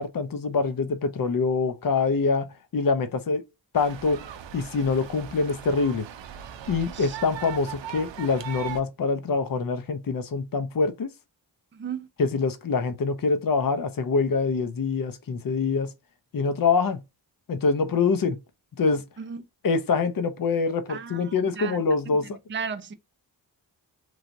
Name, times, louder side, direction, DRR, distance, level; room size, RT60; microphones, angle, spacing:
voice 1, 0.0-2.5 2.7-3.4 3.7-4.2 4.5-6.1 6.7-11.1 12.2-15.9 16.3-17.0 17.5-18.4 18.8-19.0 19.6-22.4, left 4 dB, 50° left, 0.7 m, -25 dB
sound 1, 3.7-8.8, right 9 dB, 80° right, 0.6 m, -39 dB
voice 2, 11.7-12.1 19.2-19.4 20.9-21.8 22.2-22.9, right 6 dB, 25° right, 0.5 m, -35 dB
3.2 x 2.4 x 2.5 m
cardioid pair, 55°, 44 cm